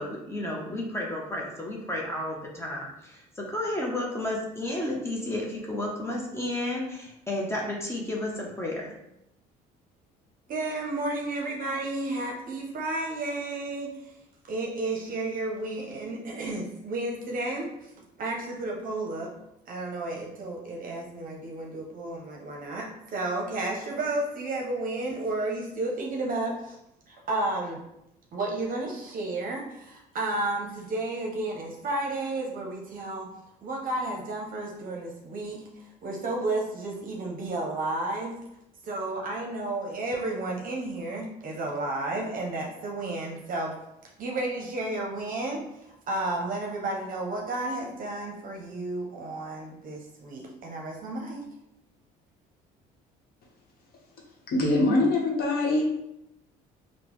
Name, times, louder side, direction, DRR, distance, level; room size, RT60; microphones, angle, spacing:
voice 1, 0.0-8.9, left 1 dB, 15° left, -2 dB, 0.7 m, -32 dB
voice 2, 10.5-14.1 14.5-17.9 18.2-19.3 19.7-26.8 27.1-27.8 28.3-33.3 33.6-38.4 38.8-43.7 44.2-51.4, right 2 dB, 50° right, 0 dB, 0.6 m, -32 dB
voice 3, 54.5-55.8, left 2 dB, 60° left, -1 dB, 0.9 m, -23 dB
3.6 x 2.0 x 3.0 m, 0.83 s
supercardioid pair, 80°, 18 cm